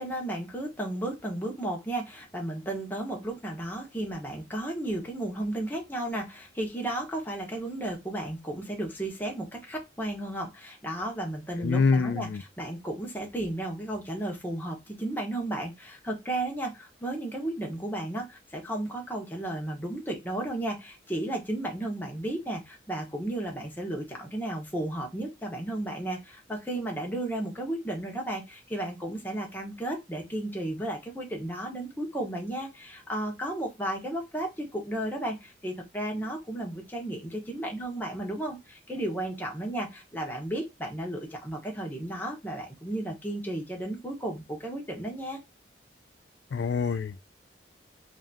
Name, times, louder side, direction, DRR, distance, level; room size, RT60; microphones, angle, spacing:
voice 1, 0.0-45.4, right 1 dB, 10° left, 1.0 m, -34 dB
voice 2, 11.6-12.4 46.5-47.2, left 4 dB, 65° left, 0.3 m, -25 dB
3.5 x 2.7 x 3.4 m
head